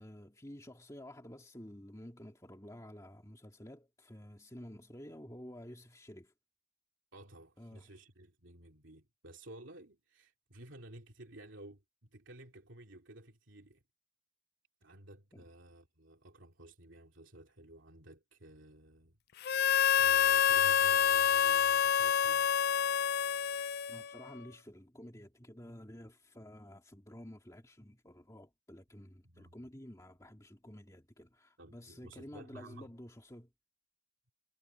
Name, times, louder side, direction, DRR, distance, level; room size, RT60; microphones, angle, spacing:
voice 1, 0.0-6.3 7.6-7.9 15.3-15.4 23.9-33.5, left 1 dB, 15° left, 2.2 m, -51 dB
voice 2, 7.1-13.8 14.8-19.2 20.0-22.5 29.2-29.7 31.6-32.9, right 1 dB, 65° right, 2.9 m, -54 dB
Harmonica, 19.4-24.3, left 8 dB, 50° left, 0.4 m, -27 dB
head